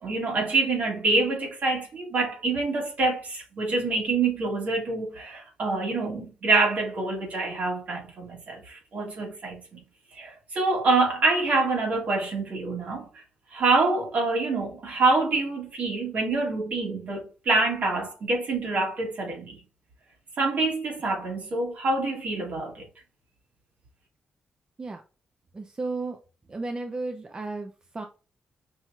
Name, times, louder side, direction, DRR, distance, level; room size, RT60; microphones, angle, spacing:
voice 1, 0.0-9.8 10.1-13.1 13.5-19.6 20.4-22.8, right 3 dB, 65° right, 2.0 m, -26 dB
voice 2, 25.5-26.2 26.5-28.0, right 3 dB, 35° right, 0.6 m, -33 dB
5.5 x 2.9 x 2.4 m
cardioid pair, 60°, 3 cm